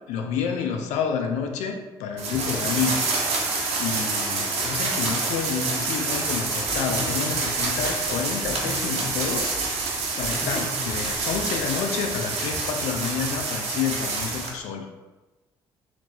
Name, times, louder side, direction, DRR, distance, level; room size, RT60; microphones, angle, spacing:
voice 1, 0.1-3.5 3.8-9.6 10.2-14.9, left 6 dB, 70° left, 4 dB, 0.5 m, -29 dB
sound 1, 2.2-14.5, right 3 dB, 65° right, 1.0 m, -27 dB
sound 2, 6.7-11.9, right 1 dB, 5° right, 0.6 m, -39 dB
2.9 x 2.9 x 4.1 m, 1.2 s
hypercardioid pair, 45°, 12 cm